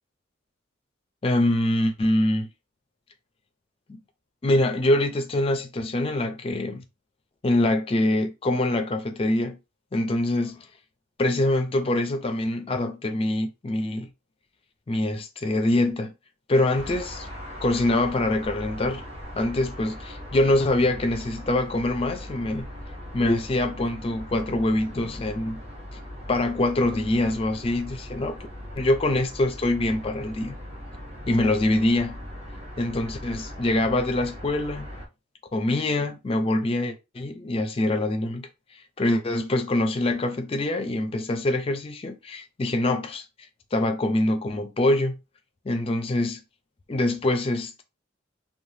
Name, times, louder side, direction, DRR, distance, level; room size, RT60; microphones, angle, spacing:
voice 1, 1.2-2.5 4.4-6.8 7.4-9.6 9.9-10.6 11.2-14.1 14.9-16.1 16.5-17.3 17.6-19.0 19.4-22.7 23.1-25.6 26.3-28.4 28.8-30.5 31.3-32.2 32.8-34.9 35.5-38.5 39.0-43.2 43.7-45.2 45.7-46.4 46.9-47.8, left 1 dB, 30° left, 0.4 m, -24 dB
sound 1, 16.7-35.1, equal, 30° right, 0.7 m, -39 dB
3.2 x 2.1 x 2.7 m
head